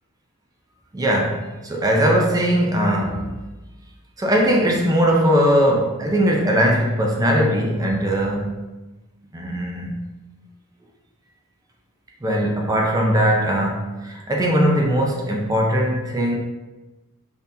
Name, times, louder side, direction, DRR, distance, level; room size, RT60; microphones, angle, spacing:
voice 1, 0.9-3.3 4.2-8.6 9.3-10.1 12.2-16.3, equal, 15° right, 0 dB, 0.4 m, -20 dB
3.7 x 2.7 x 2.6 m, 1.1 s
head